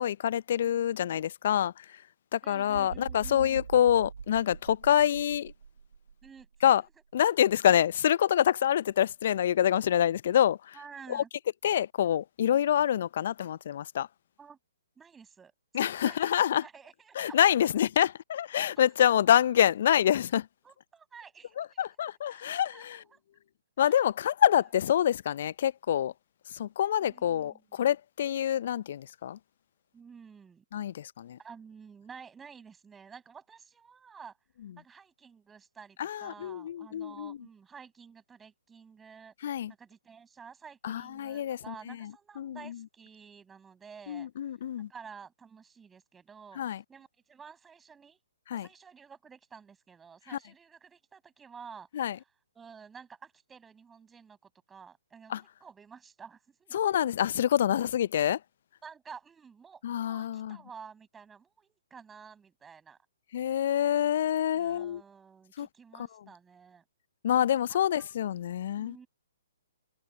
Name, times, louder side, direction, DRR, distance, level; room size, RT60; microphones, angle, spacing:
voice 1, 0.0-2.0 2.3-5.5 6.6-6.8 7.1-10.7 11.1-11.2 11.6-14.1 15.7-16.6 17.2-20.5 21.6-23.0 23.8-26.1 26.5-29.4 30.7-31.4 36.0-37.4 39.4-39.7 40.8-42.8 44.1-44.9 46.6-46.8 48.5-48.7 50.3-50.4 51.9-52.2 55.3-55.4 56.7-58.4 59.8-60.6 63.3-65.0 65.6-65.7 66.0-66.1 67.2-69.0, left 10 dB, 50° left, 0.6 m, -26 dB
voice 2, 2.4-3.7 6.2-6.5 10.7-11.3 14.4-14.6 15.0-15.5 15.8-17.6 18.8-18.9 20.6-23.2 23.8-23.9 27.0-27.9 29.9-30.6 31.4-34.4 34.8-39.3 39.8-44.3 44.9-48.2 48.5-52.1 52.5-56.8 58.8-63.0 64.5-66.8 67.7-68.2 68.8-69.1, right 6 dB, 10° right, 7.2 m, -51 dB
sound 1, 2.7-6.7 7.2-7.4, right 6 dB, 70° right, 2.7 m, -44 dB
figure-of-eight pair, 130°, 0 cm